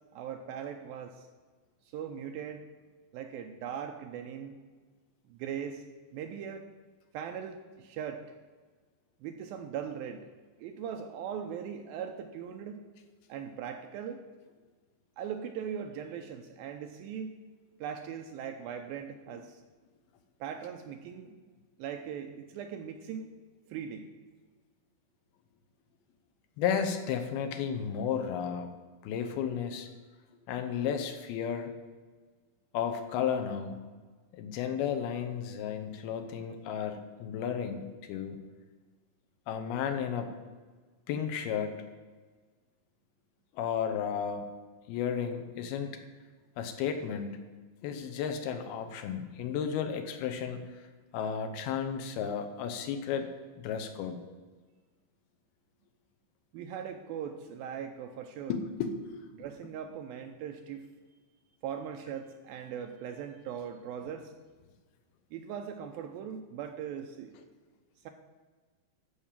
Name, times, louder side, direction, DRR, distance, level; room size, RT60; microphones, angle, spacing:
voice 1, 0.1-1.3 1.9-2.6 3.1-4.6 5.3-5.8 6.1-6.7 7.1-8.2 9.2-10.2 10.6-12.8 13.3-14.2 15.2-17.4 17.8-19.6 20.4-21.4 21.8-23.3 23.7-24.1 56.5-58.5 59.3-60.9 61.6-64.3 65.3-67.4, right 8 dB, 80° right, 6 dB, 2.2 m, -40 dB
voice 2, 26.6-28.7 29.0-29.9 30.5-31.7 32.7-33.8 34.3-38.4 39.5-40.3 41.1-41.8 43.6-44.5 44.9-45.9 46.6-47.4 47.8-50.6 51.1-53.3 53.6-54.2 58.5-59.1, left 7 dB, 75° left, 7 dB, 2.7 m, -33 dB
13.0 x 5.3 x 7.4 m, 1.4 s
omnidirectional pair, 4.8 m